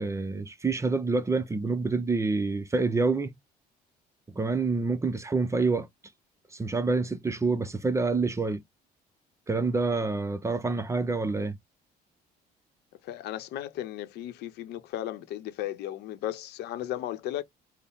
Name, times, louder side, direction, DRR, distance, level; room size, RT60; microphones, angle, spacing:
voice 1, 0.0-3.4 4.3-5.9 6.5-8.6 9.5-11.5, right 3 dB, 15° right, 0.5 m, -27 dB
voice 2, 13.0-17.4, left 12 dB, 80° left, 0.7 m, -35 dB
4.4 x 2.0 x 3.4 m
cardioid pair, 110°, 17 cm